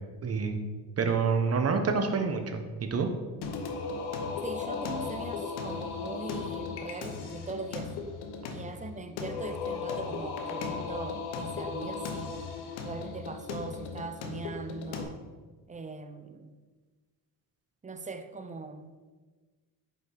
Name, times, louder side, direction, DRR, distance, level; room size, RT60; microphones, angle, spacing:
voice 1, 0.2-0.6 1.0-3.1, right 5 dB, 40° right, 6 dB, 0.9 m, -27 dB
Singing, 3.4-15.0, left 5 dB, 85° left, 0.9 m, -36 dB
voice 2, 4.4-7.9 8.5-12.3 12.8-15.2 15.7-16.5 17.8-18.9, right 3 dB, 20° right, 9 dB, 0.5 m, -40 dB
5.4 x 5.1 x 3.9 m, 1.3 s
cardioid pair, 80°, 38 cm